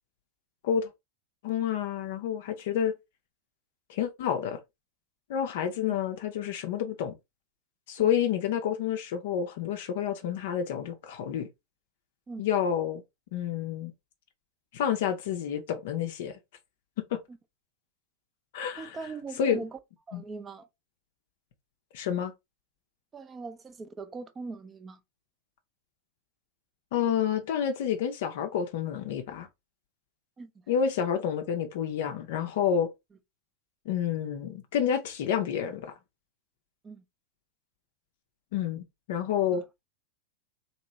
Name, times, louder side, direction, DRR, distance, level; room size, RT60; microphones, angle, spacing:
voice 1, 1.4-2.9 3.9-4.6 5.3-7.1 7.9-11.5 12.4-13.0 13.3-13.9 14.7-16.4 17.1-17.2 18.5-19.0 19.4-19.6 20.1-20.2 21.9-22.3 26.9-29.5 30.7-32.9 33.9-36.0 38.5-39.6, left 8 dB, 55° left, 0.5 m, -29 dB
voice 2, 18.8-19.8 20.1-20.7 23.1-25.0 30.4-30.7 36.8-37.0 39.5-39.6, right 4 dB, 20° right, 0.5 m, -41 dB
3.0 x 2.9 x 2.7 m
figure-of-eight pair, 90°, 0 cm